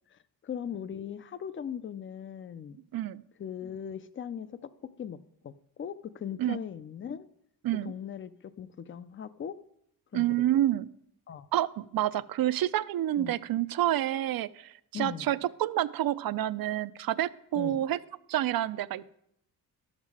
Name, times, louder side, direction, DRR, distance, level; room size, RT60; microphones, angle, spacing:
voice 1, 0.1-2.8 3.4-4.5 5.0-5.2 5.4-7.3 7.8-8.3 8.6-9.6 10.1-10.2 11.3-11.5 13.2-13.3 14.9-15.3 17.6-17.8, left 8 dB, 35° left, 15 dB, 0.5 m, -39 dB
voice 2, 10.1-10.9 11.5-18.0 18.3-19.2, right 13 dB, 65° right, 16 dB, 0.5 m, -28 dB
12.0 x 7.4 x 4.8 m, 0.74 s
wide cardioid pair, 135°, 38 cm